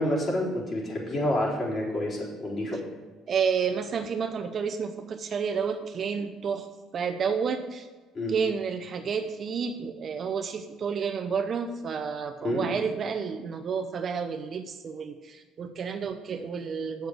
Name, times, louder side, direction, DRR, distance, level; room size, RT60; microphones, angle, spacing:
voice 1, 0.0-2.8 8.1-8.3 12.4-12.7, left 1 dB, 35° left, -5 dB, 4.0 m, -28 dB
voice 2, 3.3-6.7 6.9-7.9 8.3-17.1, right 6 dB, 40° right, 8 dB, 0.7 m, -30 dB
8.3 x 6.8 x 7.9 m, 1.4 s
cardioid pair, 130°, 0 cm